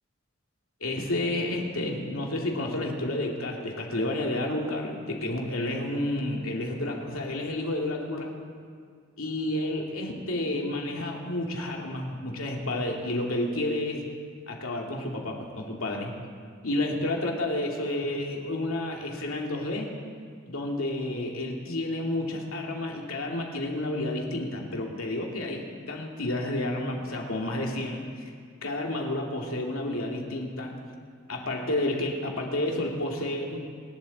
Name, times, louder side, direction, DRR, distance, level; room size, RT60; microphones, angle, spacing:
voice 1, 0.8-8.3 9.2-14.1 14.5-16.1 16.6-19.9 20.5-28.3 28.6-30.7 31.3-33.6, left 1 dB, 80° left, 0 dB, 2.5 m, -30 dB
26.0 x 12.0 x 4.2 m, 2.1 s
head